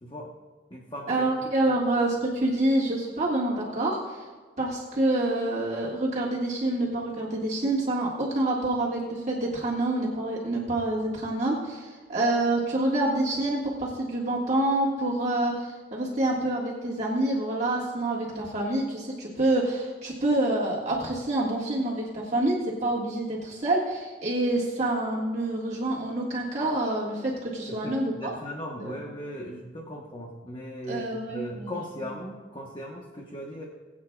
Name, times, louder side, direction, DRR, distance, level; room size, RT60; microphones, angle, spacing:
voice 1, 0.0-0.3 0.7-1.3 1.7-1.8 27.7-33.6, equal, 25° left, 0 dB, 1.1 m, -38 dB
voice 2, 1.1-4.3 4.6-28.3 28.8-29.0 30.9-31.8, right 1 dB, 40° right, -6 dB, 1.7 m, -27 dB
21.0 x 8.6 x 2.3 m, 1.5 s
head